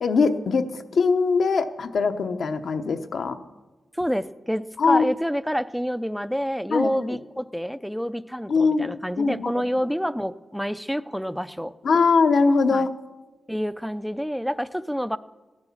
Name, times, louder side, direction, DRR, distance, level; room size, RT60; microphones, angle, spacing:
voice 1, 0.0-3.4 4.8-5.1 6.7-7.1 8.5-9.6 11.8-12.9, left 4 dB, 65° left, 7 dB, 0.9 m, -22 dB
voice 2, 3.9-11.7 12.7-12.9 13.5-15.2, equal, ahead, 15 dB, 0.4 m, -28 dB
16.5 x 9.8 x 7.2 m, 1.2 s
wide cardioid pair, 120°, 0 cm